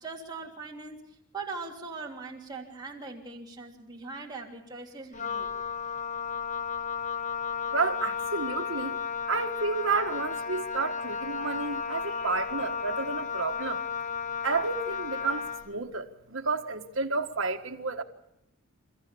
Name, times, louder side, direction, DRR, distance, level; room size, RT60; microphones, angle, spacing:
voice 1, 0.0-5.5, right 4 dB, 20° right, 3.2 m, -41 dB
Wind instrument woodwind instrument, 5.1-15.7, left 6 dB, 35° left, 0.9 m, -33 dB
voice 2, 7.7-9.0 9.3-13.8 14.4-18.0, right 4 dB, 65° right, 1.6 m, -31 dB
29.0 x 15.0 x 7.1 m
head